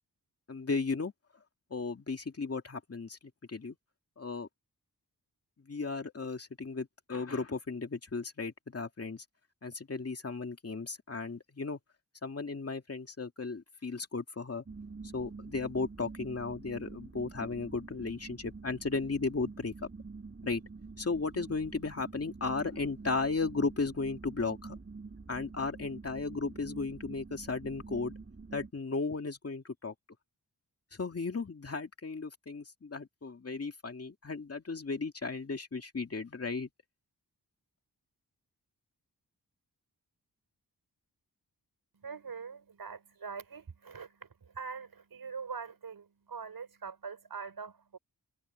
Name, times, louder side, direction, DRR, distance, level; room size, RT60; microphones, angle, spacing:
voice 1, 0.5-1.1 1.7-3.2 3.5-3.8 4.2-4.5 5.6-9.2 9.6-11.8 12.2-14.6 15.1-19.7 20.4-20.6 21.0-24.8 25.3-28.1 28.5-29.9 31.0-36.7, left 4 dB, 40° left, 2.4 m, -35 dB
sound 1, 14.7-28.7, right 4 dB, 35° right, 3.8 m, -47 dB
voice 2, 41.9-48.0, right 5 dB, 75° right, 5.7 m, -43 dB
wide cardioid pair, 120°, 37 cm